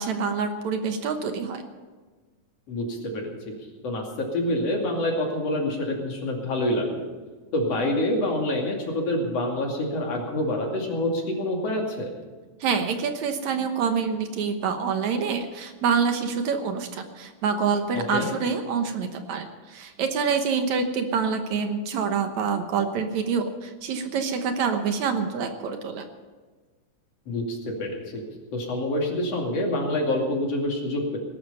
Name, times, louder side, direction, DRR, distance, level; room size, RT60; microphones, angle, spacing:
voice 1, 0.0-1.6 12.6-26.1, right 5 dB, 70° right, 6 dB, 2.4 m, -26 dB
voice 2, 2.7-3.5 3.8-7.1 7.5-12.1 17.9-18.3 27.3-28.2 28.5-31.2, left 1 dB, 55° left, 0 dB, 3.5 m, -27 dB
19.5 x 12.0 x 5.6 m, 1.4 s
omnidirectional pair, 3.6 m